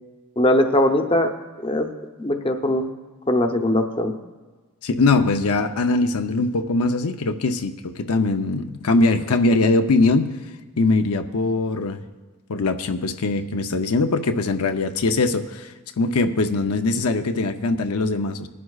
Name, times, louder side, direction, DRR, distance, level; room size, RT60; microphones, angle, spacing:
voice 1, 0.4-1.3 1.6-1.9 2.2-2.9 3.3-4.1, left 1 dB, 25° left, 5 dB, 0.7 m, -20 dB
voice 2, 4.8-10.3 10.8-12.0 12.5-18.5, left 3 dB, 90° left, 7 dB, 0.6 m, -21 dB
20.0 x 11.0 x 2.4 m, 1.3 s
head